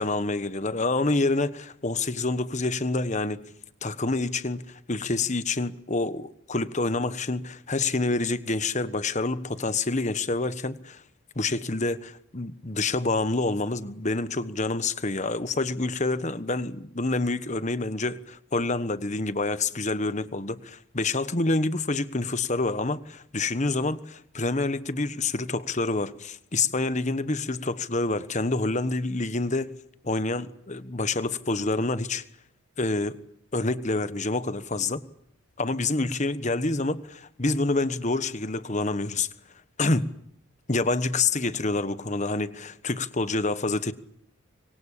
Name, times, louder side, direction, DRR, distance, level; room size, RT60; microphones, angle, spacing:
voice 1, 0.0-3.4 3.8-11.0 11.3-29.7 30.0-32.2 32.8-33.2 33.5-35.0 35.6-39.3 39.8-40.1 40.7-43.9, left 3 dB, 35° left, 1.3 m, -27 dB
26.0 x 23.0 x 8.6 m
head